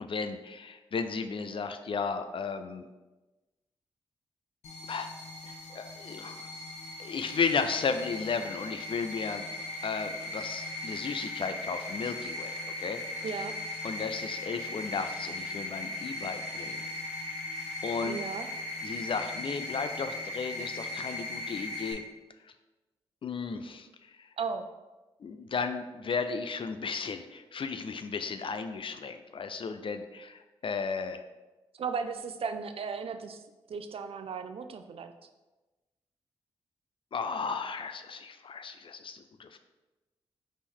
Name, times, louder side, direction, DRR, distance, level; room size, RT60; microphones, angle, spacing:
voice 1, 0.0-2.9 4.9-5.1 5.4-6.5 7.0-9.5 9.8-13.4 13.8-16.8 17.8-18.2 18.8-22.0 23.2-23.9 24.2-24.3 25.2-31.2 37.1-39.6, left 5 dB, 50° left, 8 dB, 0.4 m, -34 dB
sound 1, 4.6-21.9, left 2 dB, 80° left, 1.0 m, -38 dB
voice 2, 13.2-13.6 18.0-18.5 24.4-24.7 31.7-33.4 33.7-35.1, right 5 dB, 55° right, 8 dB, 0.4 m, -35 dB
4.2 x 3.0 x 3.6 m, 1.1 s
supercardioid pair, 40°, 11 cm